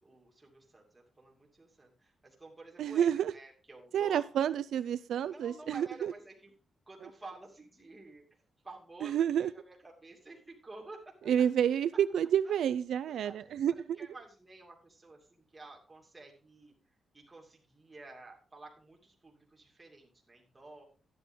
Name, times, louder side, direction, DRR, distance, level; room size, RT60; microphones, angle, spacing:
voice 1, 0.0-4.2 5.3-6.6 6.9-9.1 9.4-11.5 12.4-12.6 13.2-16.7 17.1-20.8, right 2 dB, 15° right, 0 dB, 2.6 m, -51 dB
voice 2, 2.8-3.3 3.9-6.1 9.0-9.5 11.3-13.7, right 9 dB, 90° right, 13 dB, 0.4 m, -29 dB
12.0 x 9.8 x 3.7 m, 0.37 s
wide cardioid pair, 165°, 0 cm